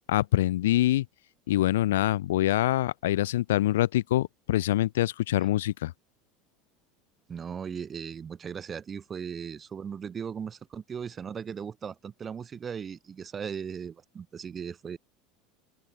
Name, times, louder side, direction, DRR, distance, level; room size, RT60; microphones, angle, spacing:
voice 1, 0.1-1.0 1.5-5.9, left 14 dB, 75° left, 2.9 m, -25 dB
voice 2, 7.3-15.0, right 7 dB, 30° right, 3.4 m, -38 dB
open air
hypercardioid pair, 80°, 0 cm